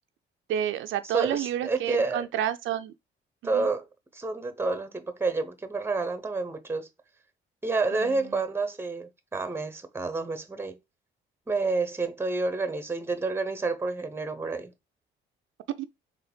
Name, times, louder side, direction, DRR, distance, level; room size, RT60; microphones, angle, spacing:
voice 1, 0.5-2.9 3.4-3.7 7.9-8.4 15.8-15.9, right 10 dB, 80° right, 0.5 m, -30 dB
voice 2, 1.1-2.3 3.4-3.9 4.1-6.9 7.6-10.8 11.5-14.7, right 3 dB, 10° right, 0.8 m, -29 dB
4.0 x 3.1 x 4.2 m
cardioid pair, 90°, 20 cm